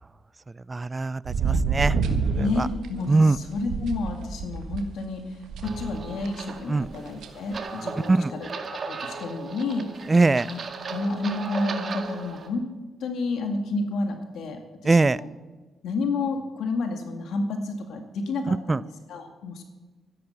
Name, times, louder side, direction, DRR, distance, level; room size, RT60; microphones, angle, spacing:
voice 1, 0.7-2.0 2.4-2.7 3.1-3.4 6.7-6.9 8.1-8.3 10.1-10.5 14.8-15.2 18.7-18.8, right 3 dB, 25° right, 20 dB, 0.4 m, -21 dB
sound 1, 1.2-4.8 5.5-6.3 6.6-7.6, right 5 dB, 80° right, 1.5 m, -28 dB
voice 2, 2.3-8.5 8.8-9.9 10.4-10.6 10.9-12.7 13.0-15.3 15.8-19.6, left 3 dB, 80° left, 5 dB, 2.1 m, -30 dB
sound 2, 5.6-12.5, right 4 dB, 50° right, 1.9 m, -37 dB
13.5 x 10.5 x 6.6 m, 1.3 s
cardioid pair, 70°, 0 cm